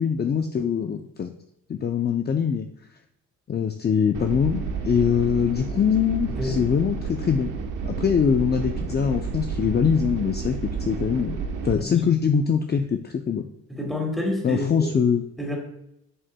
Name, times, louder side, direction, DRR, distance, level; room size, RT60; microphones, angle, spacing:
voice 1, 0.0-1.3 1.7-2.7 3.5-7.5 7.8-11.4 11.6-13.5 14.4-15.2, left 7 dB, 35° left, 6 dB, 0.6 m, -23 dB
sound 1, 4.1-11.7, right 5 dB, 80° right, 1.1 m, -31 dB
voice 2, 13.7-14.7 15.4-15.6, left 1 dB, ahead, 0 dB, 2.6 m, -28 dB
11.0 x 6.2 x 2.3 m, 0.77 s
cardioid pair, 90°, 30 cm